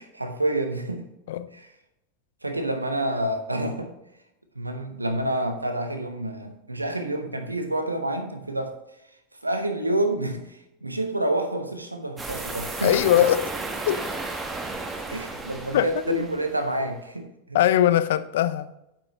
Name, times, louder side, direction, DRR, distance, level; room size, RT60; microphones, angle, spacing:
voice 1, 0.0-1.1 1.5-1.7 2.4-3.9 4.5-8.7 9.4-13.0 15.1-17.6, right 1 dB, 85° right, 6 dB, 1.1 m, -28 dB
sound 1, 12.2-16.6, right 3 dB, 10° right, 1.4 m, -33 dB
voice 2, 12.8-13.5 13.9-14.0 15.7-16.3 17.5-18.7, left 12 dB, 60° left, 14 dB, 0.5 m, -21 dB
9.0 x 7.5 x 3.0 m, 0.86 s
figure-of-eight pair, 85°, 0 cm